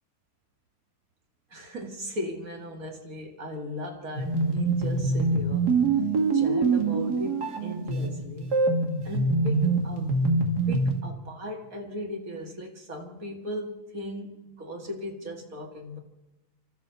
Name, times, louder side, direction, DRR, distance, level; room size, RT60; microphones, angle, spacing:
voice 1, 1.5-5.7 6.3-8.6 9.0-16.0, equal, 60° right, 2.6 m, -38 dB
sound 1, 4.1-11.0, right 3 dB, 85° right, 2.7 m, -25 dB
30.0 x 13.0 x 7.0 m
omnidirectional pair, 1.7 m